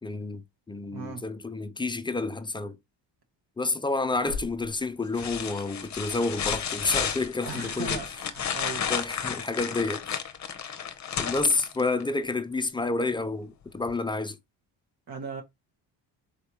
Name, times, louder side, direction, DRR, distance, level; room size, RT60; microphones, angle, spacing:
voice 1, 0.0-2.8 3.6-8.0 8.9-10.2 11.2-14.4, left 3 dB, 10° left, 0.3 m, -29 dB
voice 2, 0.9-1.2 7.4-8.9 15.1-15.4, right 5 dB, 55° right, 1.1 m, -38 dB
sound 1, 4.3-4.7 5.1-12.1 13.9-14.0, left 7 dB, 40° left, 0.8 m, -32 dB
4.1 x 3.4 x 2.9 m
cardioid pair, 90°, 45 cm